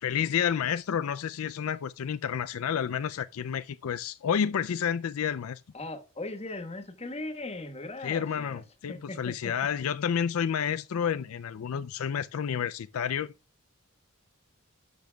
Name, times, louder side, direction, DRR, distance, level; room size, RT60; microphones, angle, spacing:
voice 1, 0.0-5.6 8.0-13.3, left 8 dB, 70° left, 0.4 m, -30 dB
voice 2, 5.7-9.5, left 2 dB, 30° left, 1.3 m, -39 dB
12.0 x 6.7 x 2.3 m
head